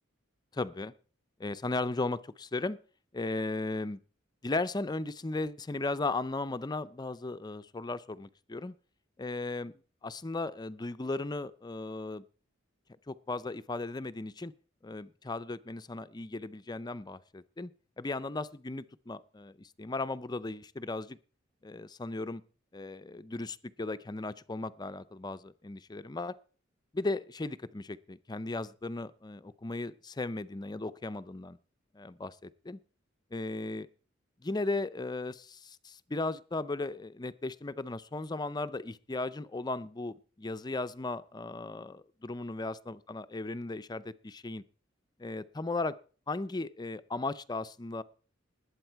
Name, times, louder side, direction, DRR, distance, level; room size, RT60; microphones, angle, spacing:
voice 1, 0.5-0.9 1.4-2.8 3.1-4.0 4.4-8.7 9.2-9.7 10.0-12.2 13.1-14.5 14.8-17.7 18.0-21.2 21.6-22.4 22.7-26.3 26.9-31.6 31.9-32.8 33.3-33.9 34.4-44.6 45.2-45.9 46.3-48.0, left 2 dB, 20° left, 14 dB, 0.5 m, -36 dB
20.0 x 8.1 x 4.6 m, 0.40 s
head